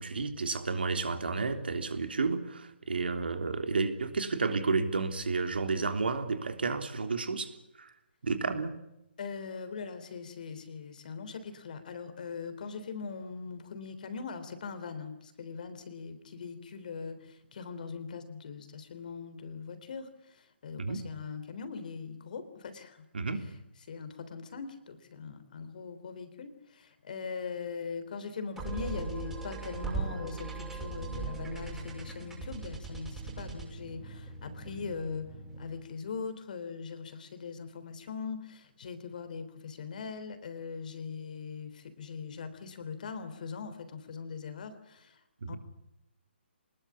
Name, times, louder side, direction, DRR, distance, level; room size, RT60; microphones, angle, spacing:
voice 1, 0.0-7.5 7.8-7.9 8.2-8.7 20.8-21.0 23.1-23.4 45.4-45.6, right 4 dB, 60° right, 6 dB, 3.4 m, -31 dB
voice 2, 9.2-23.1 23.9-35.3 35.6-45.2 45.5-45.6, left 5 dB, 45° left, 10 dB, 3.6 m, -41 dB
sound 1, 28.6-35.9, right 3 dB, 5° right, 6.3 m, -39 dB
25.0 x 20.5 x 8.5 m, 0.86 s
figure-of-eight pair, 135°, 6 cm